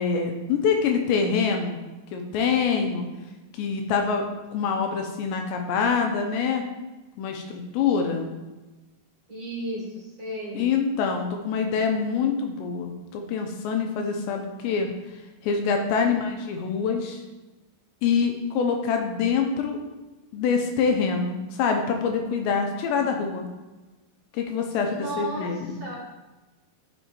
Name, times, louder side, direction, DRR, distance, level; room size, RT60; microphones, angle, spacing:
voice 1, 0.0-1.8 2.1-3.0 3.5-4.3 4.5-6.6 7.2-8.3 10.5-14.9 15.4-17.2 18.0-19.8 20.3-23.5 24.3-25.7, left 5 dB, 80° left, 3 dB, 3.0 m, -25 dB
voice 2, 9.3-10.7 16.0-16.3 24.8-25.5 25.8-26.0, equal, 30° right, -7 dB, 3.1 m, -34 dB
14.0 x 6.5 x 3.1 m, 1.1 s
omnidirectional pair, 5.2 m